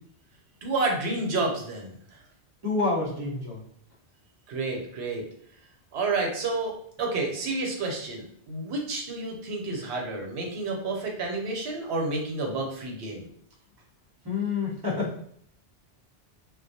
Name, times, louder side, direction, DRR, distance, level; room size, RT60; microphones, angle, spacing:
voice 1, 0.6-1.9 4.5-5.2 5.9-13.3, right 3 dB, 80° right, 1 dB, 0.9 m, -30 dB
voice 2, 2.6-3.6 14.2-15.2, left 3 dB, 25° right, -4 dB, 0.6 m, -28 dB
2.3 x 2.0 x 2.6 m, 0.64 s
omnidirectional pair, 1.1 m